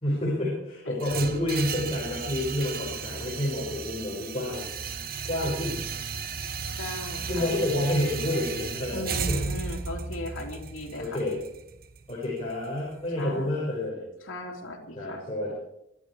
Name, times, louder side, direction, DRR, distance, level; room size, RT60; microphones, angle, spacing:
voice 1, 0.0-4.6 4.9-5.8 7.3-9.4 11.0-11.4 12.1-14.0 15.0-15.5, left 1 dB, 30° left, -6 dB, 5.5 m, -29 dB
sound 1, 1.0-13.0, right 5 dB, 45° right, 1.0 m, -35 dB
voice 2, 6.7-7.5 8.9-11.2 13.2-13.5 14.2-15.2, left 1 dB, 75° left, -1 dB, 3.3 m, -37 dB
22.5 x 12.0 x 4.9 m, 0.80 s
head